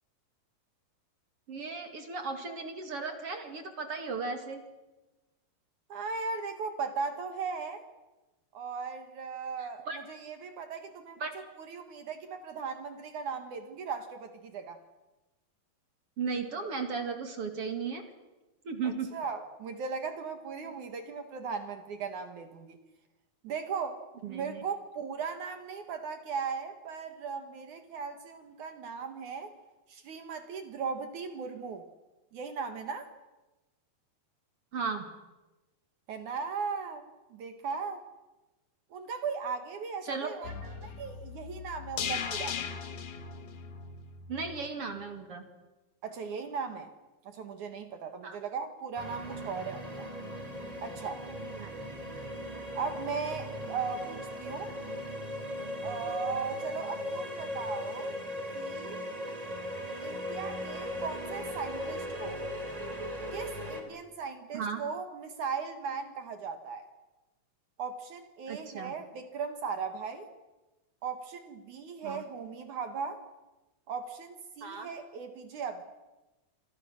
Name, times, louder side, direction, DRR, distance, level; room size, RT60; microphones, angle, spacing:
voice 1, 1.5-4.6 9.6-10.0 11.2-11.3 16.2-18.0 18.6-19.1 20.6-20.7 24.2-24.6 34.7-35.1 40.0-40.3 44.3-45.4 48.2-48.4 51.5-51.7 64.5-64.8 68.5-68.9 72.0-72.2 74.6-74.9, right 5 dB, 40° right, 6 dB, 2.5 m, -36 dB
voice 2, 5.9-7.8 8.5-11.2 11.6-14.8 18.8-22.8 23.4-29.5 29.9-31.8 32.3-33.1 36.1-38.0 38.9-42.6 46.0-46.9 47.2-50.1 50.8-51.2 52.7-54.7 55.8-58.1 58.5-59.0 60.0-62.4 63.3-66.9 67.8-70.3 71.0-73.2 73.9-75.8, right 5 dB, 60° right, 7 dB, 2.5 m, -37 dB
sound 1, 40.4-44.7 45.0-45.1, left 7 dB, 60° left, 2.7 m, -38 dB
sound 2, 49.0-63.8, equal, 10° right, 2.7 m, -38 dB
28.0 x 24.0 x 6.5 m, 1.1 s
omnidirectional pair, 4.7 m